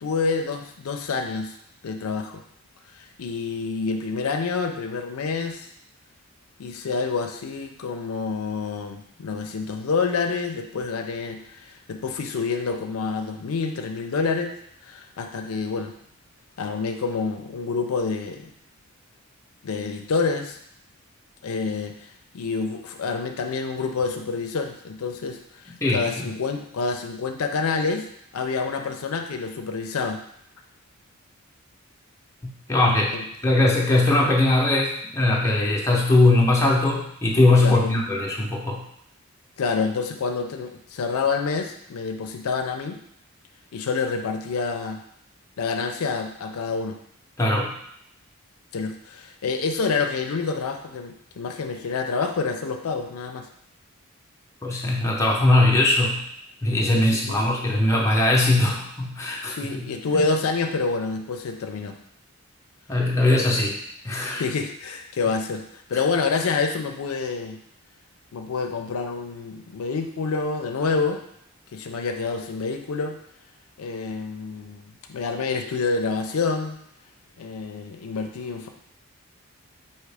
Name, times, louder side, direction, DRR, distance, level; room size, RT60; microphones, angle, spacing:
voice 1, 0.0-1.5 1.8-2.4 3.0-5.7 6.6-14.5 14.8-15.9 16.6-18.5 19.6-20.6 21.4-21.9 22.3-25.4 25.6-28.1 28.3-30.2 33.1-33.3 37.6-37.9 39.6-43.0 43.7-45.0 45.6-47.0 48.7-53.5 57.3-57.4 59.5-62.0 64.4-67.6 68.3-71.2 71.7-73.1 73.8-76.8 77.4-78.7, left 4 dB, 80° left, 5 dB, 0.4 m, -27 dB
voice 2, 25.7-26.2 32.4-33.2 33.4-38.8 47.4-47.7 54.6-56.2 56.6-59.6 60.1-60.2 62.9-63.7 64.0-64.4, left 2 dB, 15° left, -3 dB, 0.6 m, -20 dB
4.8 x 2.8 x 3.4 m, 0.69 s
head